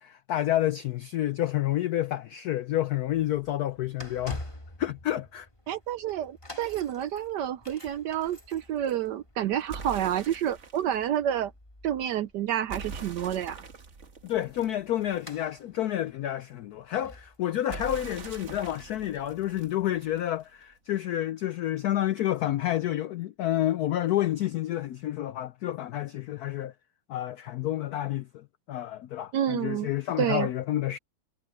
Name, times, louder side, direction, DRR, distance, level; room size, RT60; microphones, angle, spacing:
voice 1, 0.0-4.4 4.8-5.5 14.2-26.7 27.1-31.0, left 13 dB, 85° left, 0.8 m, -29 dB
sound 1, 2.9-19.9 20.5-20.6, left 1 dB, 15° left, 3.1 m, -49 dB
voice 2, 5.7-11.5 11.8-13.6 29.3-29.9 30.2-30.5, right 10 dB, 70° right, 1.0 m, -29 dB
sound 2, 9.7-10.9 12.7-15.4 17.7-20.4, right 4 dB, 40° right, 1.5 m, -43 dB
omnidirectional pair, 2.3 m